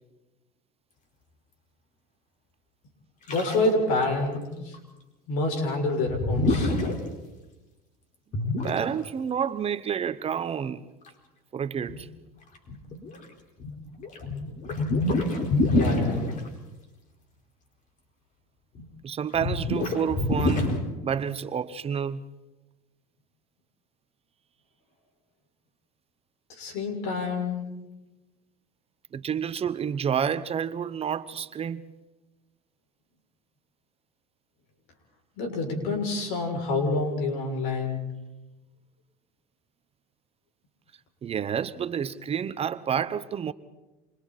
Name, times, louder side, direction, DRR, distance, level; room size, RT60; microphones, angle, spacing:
voice 1, 3.3-4.8 5.3-6.7 14.4-14.5 15.7-16.4 26.5-27.6 35.4-38.0, left 2 dB, 70° left, 6.7 m, -27 dB
sound 1, 3.3-3.8 4.0-4.1 4.4-4.5 4.7-4.8 6.1-6.9 8.3-8.8 11.1-11.2 11.9-12.0 12.5-13.2 13.6-16.5 18.7-18.8 19.3-20.8, left 2 dB, 40° left, 4.6 m, -26 dB
voice 2, 8.6-10.8 11.5-12.1 19.0-20.7 21.0-22.2 29.1-31.9 41.2-43.5, right 8 dB, 30° right, 0.9 m, -29 dB
30.0 x 27.0 x 4.3 m
supercardioid pair, 100°, 19 cm